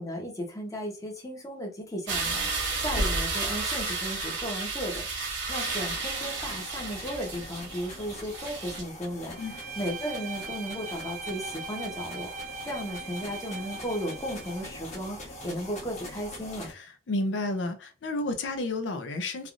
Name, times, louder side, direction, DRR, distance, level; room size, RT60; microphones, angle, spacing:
voice 1, 0.0-16.7, equal, 20° left, 0.8 m, -35 dB
sound 1, 2.1-8.8, right 3 dB, 90° right, 0.9 m, -32 dB
sound 2, 5.6-16.7, left 1 dB, 40° left, 1.1 m, -44 dB
Bowed string instrument, 9.3-14.7, right 4 dB, 45° right, 0.4 m, -40 dB
voice 2, 16.7-19.5, left 2 dB, 75° left, 0.5 m, -31 dB
3.3 x 2.4 x 2.4 m
head